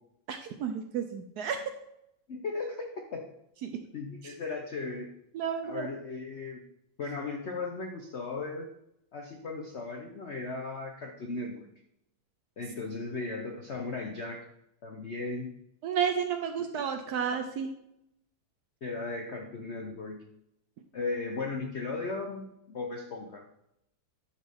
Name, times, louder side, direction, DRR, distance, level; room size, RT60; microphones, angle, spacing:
voice 1, 0.3-1.6 3.6-3.8 4.2-4.3 5.3-5.9 15.8-17.7, right 7 dB, 75° right, 6 dB, 0.9 m, -32 dB
voice 2, 2.3-3.3 3.9-5.1 5.6-6.6 7.0-8.7 9.1-11.7 12.6-14.5 14.8-15.5 18.8-20.2 20.9-23.4, left 3 dB, 70° left, 3 dB, 0.6 m, -36 dB
11.0 x 4.2 x 3.4 m, 0.80 s
omnidirectional pair, 2.1 m